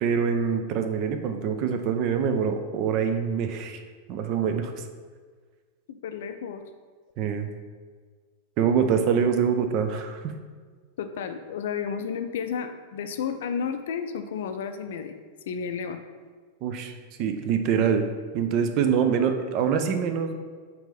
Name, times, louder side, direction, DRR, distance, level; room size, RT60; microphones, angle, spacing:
voice 1, 0.0-3.8 4.1-4.7 7.2-7.5 8.6-10.3 16.6-16.9 17.2-18.0 18.3-20.3, right 7 dB, 40° right, 7 dB, 0.5 m, -25 dB
voice 2, 5.9-6.6 11.0-15.1 15.5-16.0, left 7 dB, 60° left, 9 dB, 0.4 m, -32 dB
4.5 x 4.2 x 5.1 m, 1.5 s
figure-of-eight pair, 90°, 0 cm